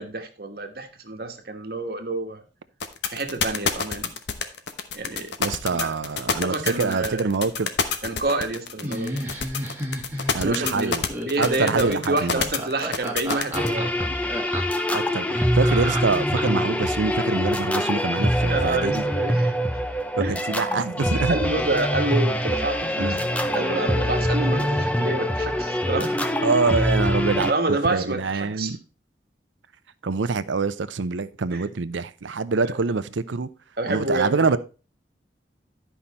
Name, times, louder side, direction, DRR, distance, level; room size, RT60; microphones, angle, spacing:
voice 1, 0.0-2.4 3.1-4.1 4.9-5.3 5.7-5.9 6.3-7.3 8.0-9.2 10.3-10.9 11.2-14.2 15.3-15.4 18.5-19.5 20.2-20.5 21.3-23.2 23.5-26.2 27.5-28.7 31.5-31.6 32.6-32.8 33.8-34.6, right 2 dB, 55° right, 1.3 m, -28 dB
sound 1, 2.8-13.7, left 5 dB, 70° left, 1.0 m, -27 dB
voice 2, 5.4-7.7 10.3-11.0 11.4-12.4 14.9-19.0 20.3-21.4 23.0-23.3 26.4-27.5 27.9-28.8 30.0-33.5 33.9-34.6, right 4 dB, 90° right, 0.6 m, -25 dB
Laughter, 8.8-16.7, right 1 dB, 10° right, 1.5 m, -32 dB
sound 2, 13.5-27.5, equal, 5° left, 0.6 m, -24 dB
10.5 x 5.7 x 4.1 m
head